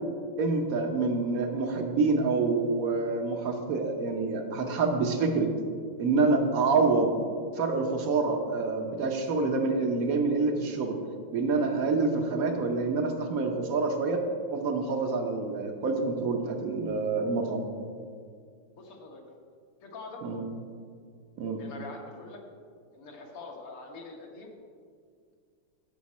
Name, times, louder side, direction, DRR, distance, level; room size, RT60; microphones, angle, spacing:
voice 1, 0.4-5.5 6.0-7.1 7.6-11.0 11.3-14.2 14.5-17.6 20.2-20.4 21.4-21.6, right 3 dB, 60° right, 4 dB, 0.9 m, -27 dB
voice 2, 18.7-19.2 19.8-20.2 21.6-22.4 22.9-24.5, left 3 dB, 85° left, 0 dB, 2.2 m, -44 dB
15.0 x 5.2 x 4.2 m, 2.1 s
omnidirectional pair, 2.4 m